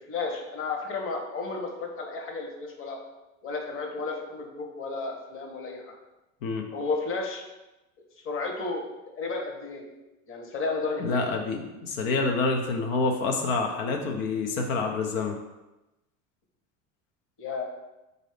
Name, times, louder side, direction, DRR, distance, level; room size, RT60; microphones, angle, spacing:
voice 1, 0.1-3.0 3.4-5.9 6.7-7.4 8.2-8.8 9.1-9.8 10.3-11.2 17.4-17.6, left 3 dB, 35° left, 2 dB, 1.0 m, -32 dB
voice 2, 11.0-15.4, left 3 dB, 85° left, 2 dB, 0.7 m, -27 dB
4.0 x 2.7 x 4.8 m, 1.0 s
supercardioid pair, 95°, 39 cm